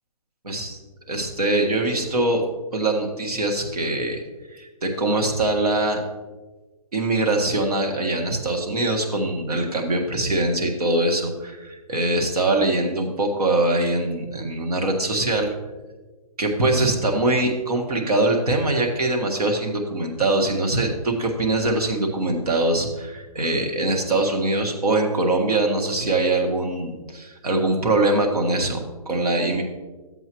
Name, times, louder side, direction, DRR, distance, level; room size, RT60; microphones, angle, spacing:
voice 1, 1.1-2.4 2.7-4.2 4.5-6.0 6.9-15.5 16.4-29.6, right 2 dB, 85° right, 2 dB, 1.7 m, -23 dB
12.5 x 7.8 x 3.0 m, 1.3 s
hypercardioid pair, 160°, 19 cm